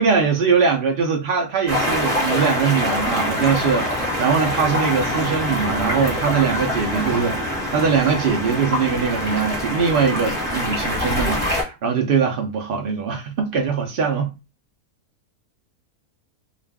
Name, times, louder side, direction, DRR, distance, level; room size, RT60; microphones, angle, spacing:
voice 1, 0.0-14.3, right 6 dB, 85° right, 0.4 m, -21 dB
sound 1, 1.7-11.6, left 1 dB, 30° right, 0.8 m, -24 dB
2.4 x 2.3 x 3.4 m
omnidirectional pair, 1.7 m